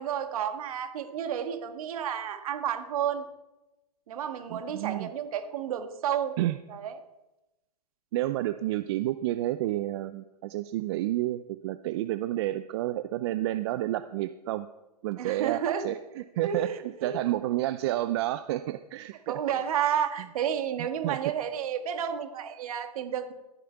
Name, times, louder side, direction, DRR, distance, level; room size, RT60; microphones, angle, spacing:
voice 1, 0.0-3.2 4.1-6.4 6.7-6.9 15.2-15.9 16.4-17.1 19.3-23.3, right 9 dB, 60° right, 7 dB, 1.7 m, -31 dB
voice 2, 4.5-5.1 6.4-6.6 8.1-14.7 15.0-19.4 21.0-21.2, right 15 dB, 40° right, 11 dB, 0.5 m, -30 dB
14.0 x 9.2 x 4.5 m, 0.98 s
hypercardioid pair, 135°, 21 cm